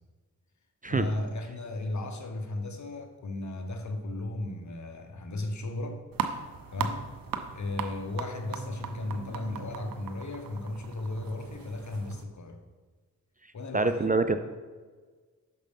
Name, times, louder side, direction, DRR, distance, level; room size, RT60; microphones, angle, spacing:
voice 1, 0.9-6.0 6.7-7.2 7.5-12.6 13.5-14.1, left 2 dB, 60° left, 6 dB, 0.9 m, -35 dB
sound 1, 6.1-12.2, right 7 dB, 90° right, 0.5 m, -38 dB
voice 2, 13.7-14.4, right 3 dB, 25° right, 10 dB, 0.4 m, -25 dB
6.5 x 5.2 x 3.5 m, 1.4 s
cardioid pair, 45°, 33 cm